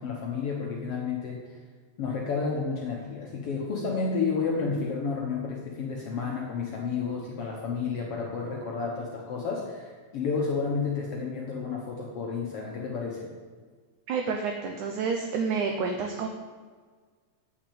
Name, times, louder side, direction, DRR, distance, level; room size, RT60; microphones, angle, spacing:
voice 1, 0.0-1.5 2.0-13.4, left 5 dB, 75° left, -1 dB, 1.3 m, -31 dB
voice 2, 14.1-16.3, right 5 dB, 75° right, 4 dB, 1.8 m, -29 dB
8.9 x 6.2 x 8.5 m, 1.5 s
omnidirectional pair, 4.3 m